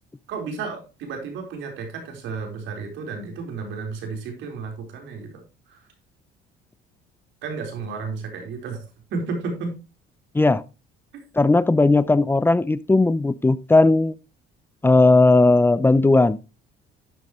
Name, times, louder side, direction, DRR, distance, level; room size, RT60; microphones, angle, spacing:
voice 1, 0.3-5.8 7.4-8.8 9.1-9.7 11.1-11.2, right 4 dB, 75° right, 4.2 m, -32 dB
voice 2, 11.4-14.1 14.8-16.4, left 2 dB, 10° left, 0.5 m, -17 dB
12.5 x 9.2 x 3.1 m
cardioid pair, 105°, 20 cm